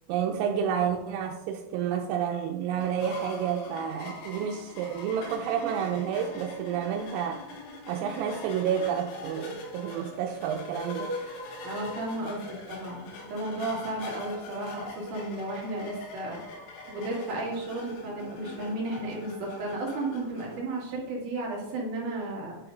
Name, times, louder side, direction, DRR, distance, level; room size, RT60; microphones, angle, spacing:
voice 1, 0.1-7.4 7.9-11.4, right 8 dB, 85° right, 2 dB, 3.3 m, -30 dB
sound 1, 2.8-20.6, left 2 dB, 85° left, 4.0 m, -42 dB
voice 2, 11.6-16.4 16.9-22.6, right 2 dB, 50° right, -3 dB, 2.7 m, -34 dB
11.0 x 4.9 x 3.8 m, 0.92 s
omnidirectional pair, 5.9 m